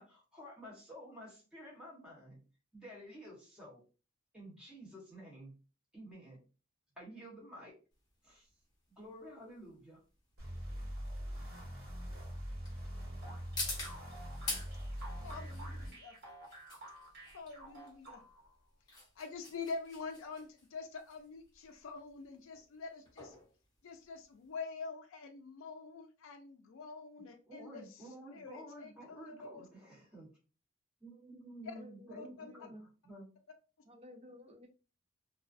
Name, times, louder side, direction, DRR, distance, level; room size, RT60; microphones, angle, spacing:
voice 1, 0.0-2.4 2.7-3.8 4.3-5.5 5.9-6.4 7.0-7.8 8.2-8.5 9.0-10.0 27.5-30.3 31.0-33.3, equal, 5° right, -6 dB, 1.0 m, -51 dB
sound 1, 7.9-24.6, left 2 dB, 20° left, 0.9 m, -47 dB
sound 2, 10.4-15.9, equal, 80° right, 1.0 m, -43 dB
sound 3, 13.2-18.5, right 1 dB, 50° right, 1.2 m, -52 dB
voice 2, 15.2-16.2 17.3-18.2 19.2-23.3 23.8-29.7 31.6-31.7 32.2-32.5, left 4 dB, 70° left, 5 dB, 0.4 m, -46 dB
voice 3, 31.6-32.9 33.9-34.7, left 1 dB, 30° right, 2 dB, 0.5 m, -54 dB
2.3 x 2.2 x 2.4 m, 0.34 s
head